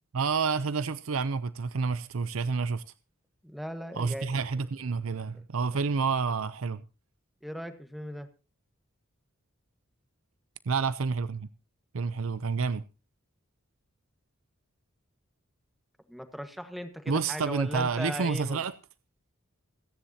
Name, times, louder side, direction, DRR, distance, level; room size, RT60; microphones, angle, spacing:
voice 1, 0.1-2.8 4.0-6.8 10.7-11.5 11.9-12.8 17.1-18.7, right 5 dB, 75° right, 0.6 m, -29 dB
voice 2, 3.4-4.4 5.3-5.4 5.7-5.8 7.4-8.3 16.1-18.6, equal, ahead, 1.4 m, -38 dB
27.0 x 10.0 x 2.8 m
head